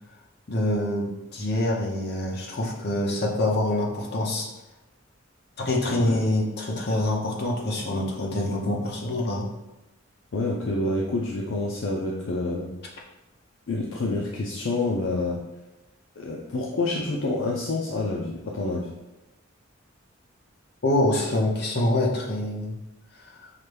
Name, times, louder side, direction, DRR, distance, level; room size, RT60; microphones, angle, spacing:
voice 1, 0.5-4.5 5.6-9.5 20.8-22.7, left 1 dB, 55° left, -2 dB, 0.8 m, -25 dB
voice 2, 10.3-12.7 13.7-15.4 16.2-18.9, left 2 dB, 70° left, -2 dB, 0.5 m, -28 dB
5.6 x 2.2 x 3.3 m, 0.97 s
head